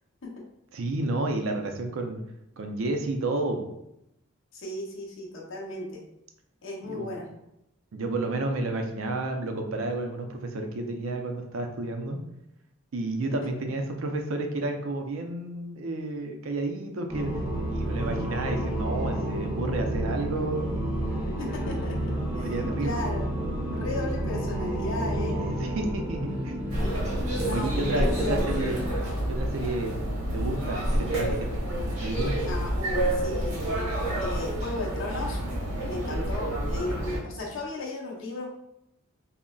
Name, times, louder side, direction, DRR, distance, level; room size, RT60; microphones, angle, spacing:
voice 1, 0.7-2.2 2.6-3.7 6.8-7.1 7.9-12.2 12.9-17.3 17.7-20.7 22.4-23.0 25.6-26.6 27.5-28.8 29.3-30.1 30.3-31.5 32.0-32.4, right 2 dB, 70° right, 4 dB, 0.4 m, -31 dB
voice 2, 4.5-6.0 6.6-7.3 13.4-13.5 21.4-23.3 23.7-25.5 27.4-28.4 32.4-33.9 34.2-35.4 35.9-38.5, left 2 dB, 60° left, -2 dB, 0.7 m, -35 dB
sound 1, 17.1-28.9, right 1 dB, 10° right, 0.5 m, -30 dB
sound 2, 26.7-37.2, right 1 dB, 85° right, 0.9 m, -29 dB
3.7 x 2.0 x 2.2 m, 0.83 s
head